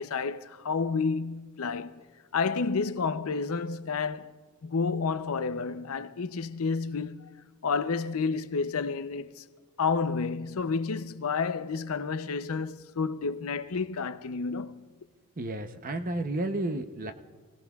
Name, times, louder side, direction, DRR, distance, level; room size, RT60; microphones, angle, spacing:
voice 1, 0.0-2.0 2.3-4.3 4.6-7.3 7.6-9.4 9.8-14.9, left 4 dB, 80° left, 0.6 m, -30 dB
voice 2, 15.4-17.1, right 2 dB, 40° right, 0.7 m, -32 dB
27.0 x 17.5 x 2.4 m
head